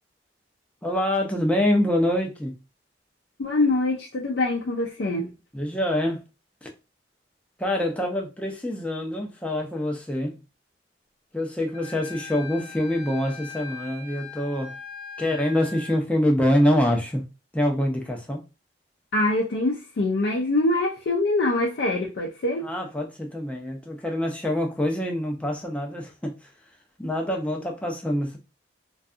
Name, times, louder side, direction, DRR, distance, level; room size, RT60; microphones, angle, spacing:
voice 1, 0.8-2.6 5.5-6.2 6.6-6.7 7.6-10.4 11.3-14.7 15.2-17.2 17.5-18.4 22.6-26.3 27.0-28.4, left 1 dB, 5° left, 0.5 m, -25 dB
voice 2, 3.4-5.3 19.1-22.7, left 2 dB, 70° left, 0.4 m, -24 dB
Wind instrument woodwind instrument, 11.7-16.0, left 5 dB, 65° right, 0.9 m, -40 dB
2.6 x 2.3 x 2.4 m
head